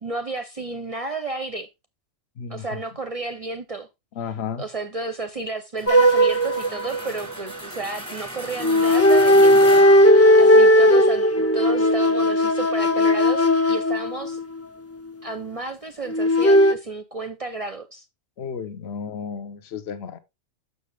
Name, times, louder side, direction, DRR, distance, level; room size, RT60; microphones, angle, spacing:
voice 1, 0.0-1.7 2.5-3.9 4.6-14.4 15.2-18.1, right 3 dB, 40° right, 0.6 m, -32 dB
voice 2, 2.4-2.8 4.1-4.6 18.4-20.2, left 6 dB, 55° left, 1.1 m, -33 dB
sound 1, 5.8-11.0, right 1 dB, 5° left, 1.2 m, -36 dB
sound 2, 5.9-7.5 8.6-14.6 16.1-16.7, equal, 20° left, 0.4 m, -16 dB
6.8 x 6.4 x 3.3 m
omnidirectional pair, 1.3 m